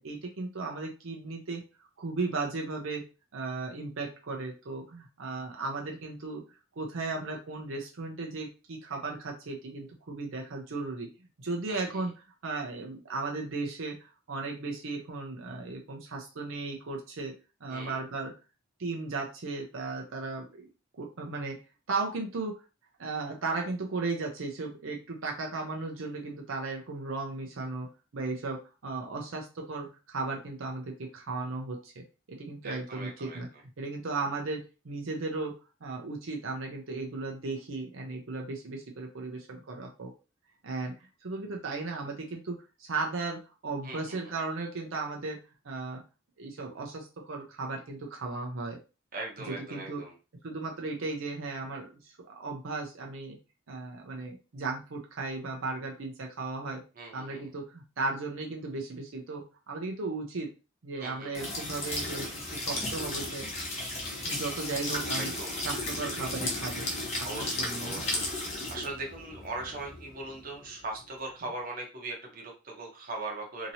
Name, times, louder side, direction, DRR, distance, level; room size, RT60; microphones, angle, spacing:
voice 1, 0.0-1.6 2.0-3.0 3.3-6.4 6.8-11.1 11.4-12.1 12.4-17.3 17.6-18.3 18.8-21.6 21.9-22.6 23.0-33.5 33.8-35.5 35.8-40.1 40.6-40.9 41.2-45.4 45.6-46.0 46.4-48.8 49.5-50.0 50.4-53.4 53.7-56.8 57.1-60.5 60.8-63.5 64.2-65.3 65.6-66.9 67.2-68.1, right 3 dB, 75° right, 1 dB, 0.6 m, -36 dB
voice 2, 11.7-12.1 17.7-18.0 32.6-33.4 43.8-44.3 49.1-50.1 57.0-57.5 61.0-61.4 65.1-65.6 67.2-68.3 68.7-73.7, right 2 dB, 45° right, 0 dB, 0.8 m, -40 dB
sound 1, 61.3-71.0, left 1 dB, 35° left, 0.9 m, -35 dB
2.9 x 2.7 x 2.7 m, 0.31 s
head